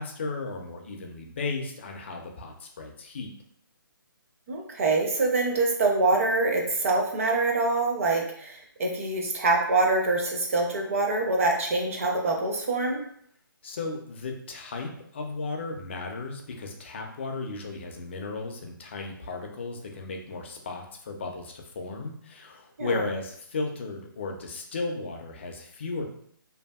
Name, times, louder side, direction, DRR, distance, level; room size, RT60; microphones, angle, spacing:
voice 1, 0.0-3.3 13.6-26.0, left 3 dB, 30° left, 2 dB, 0.4 m, -35 dB
voice 2, 4.5-13.0 22.8-23.1, right 3 dB, 40° right, 0 dB, 0.6 m, -25 dB
2.6 x 2.5 x 2.2 m, 0.65 s
hypercardioid pair, 165°, 12 cm